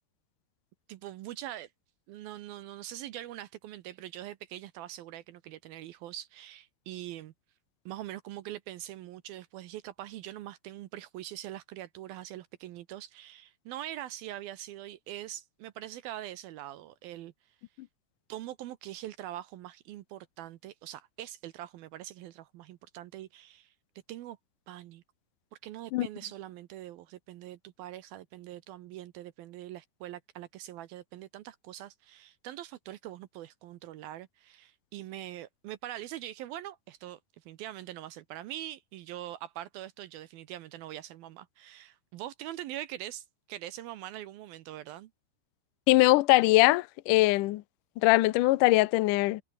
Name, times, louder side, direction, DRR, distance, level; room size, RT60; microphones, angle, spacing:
voice 1, 0.9-1.7 2.1-7.3 7.9-17.6 18.3-23.7 24.1-24.4 24.7-25.0 25.6-45.1, right 13 dB, 75° right, 2.6 m, -43 dB
voice 2, 45.9-47.6 48.0-49.4, left 19 dB, 85° left, 1.8 m, -22 dB
omnidirectional pair, 4.7 m